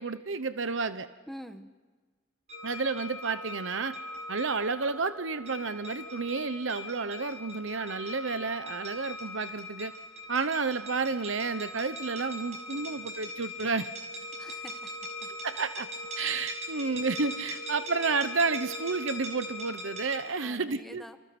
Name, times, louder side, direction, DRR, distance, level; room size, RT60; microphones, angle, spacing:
voice 1, 0.0-1.1 2.6-4.0 4.3-9.9 10.3-13.9 15.4-15.9 16.2-21.2, right 4 dB, 70° right, 12 dB, 1.0 m, -31 dB
voice 2, 1.3-1.7 14.4-15.3 20.4-21.2, equal, ahead, 7 dB, 1.3 m, -46 dB
sound 1, 2.5-20.2, left 1 dB, 35° right, 5.9 m, -40 dB
29.0 x 28.0 x 6.1 m, 1.4 s
head